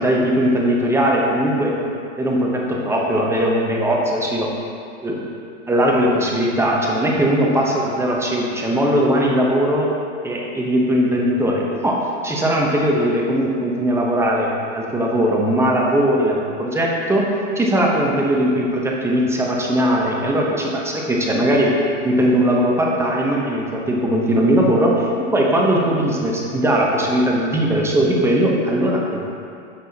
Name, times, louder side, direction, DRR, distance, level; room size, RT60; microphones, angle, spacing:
voice 1, 0.0-1.7 2.2-4.5 5.0-5.3 5.7-9.9 10.2-12.0 12.2-14.5 14.7-21.7 22.0-29.2, equal, 5° right, -2 dB, 0.7 m, -19 dB
8.7 x 6.1 x 2.8 m, 2.5 s
hypercardioid pair, 125°, 37 cm